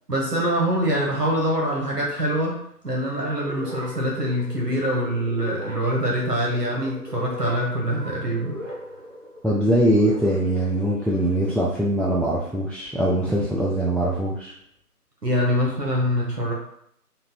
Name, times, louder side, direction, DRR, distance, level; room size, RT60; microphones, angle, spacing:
voice 1, 0.1-2.6 2.8-8.6 15.2-16.5, equal, 80° right, -3 dB, 1.4 m, -24 dB
sound 1, 3.4-11.4, equal, 50° right, 1.0 m, -39 dB
voice 2, 9.4-14.5, right 1 dB, 5° left, -6 dB, 0.3 m, -22 dB
3.8 x 2.1 x 4.2 m, 0.69 s
figure-of-eight pair, 170°, 47 cm